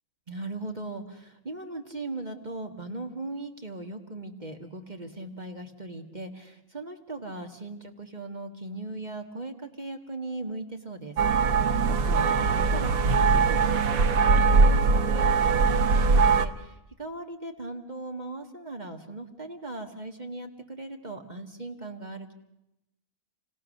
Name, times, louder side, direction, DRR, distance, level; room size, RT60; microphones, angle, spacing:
voice 1, 0.3-22.3, right 2 dB, 30° right, 4 dB, 1.7 m, -38 dB
sound 1, 11.2-16.5, right 4 dB, 80° right, 1.5 m, -21 dB
29.0 x 17.5 x 6.5 m, 0.88 s
omnidirectional pair, 1.5 m